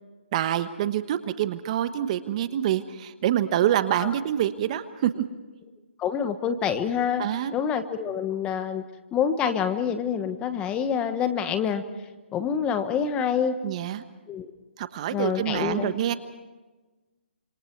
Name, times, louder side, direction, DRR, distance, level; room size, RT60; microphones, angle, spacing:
voice 1, 0.3-5.2 7.2-7.5 13.6-14.0 14.8-16.1, right 11 dB, 35° right, 11 dB, 1.2 m, -26 dB
voice 2, 6.0-7.2 7.5-8.8 9.1-11.8 12.3-13.5 14.3-14.5 15.1-15.9, left 7 dB, 15° left, 9 dB, 1.2 m, -26 dB
27.0 x 26.0 x 4.6 m, 1.2 s
hypercardioid pair, 150°, 6 cm